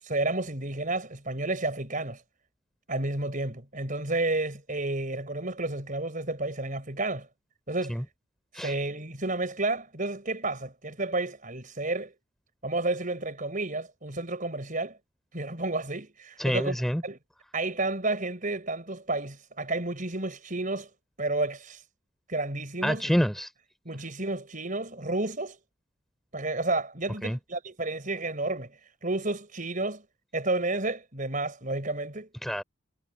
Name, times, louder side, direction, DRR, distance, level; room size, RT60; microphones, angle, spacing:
voice 1, 0.0-2.2 2.9-7.3 7.7-8.0 8.5-12.1 12.6-15.0 15.3-16.8 17.0-17.2 17.5-20.9 21.2-21.8 22.3-23.1 23.9-25.6 26.3-28.7 29.0-30.0 30.3-32.3, right 2 dB, 40° right, 5.5 m, -31 dB
voice 2, 16.4-17.0 22.8-23.5 27.2-27.4 32.4-32.6, equal, ahead, 7.5 m, -27 dB
head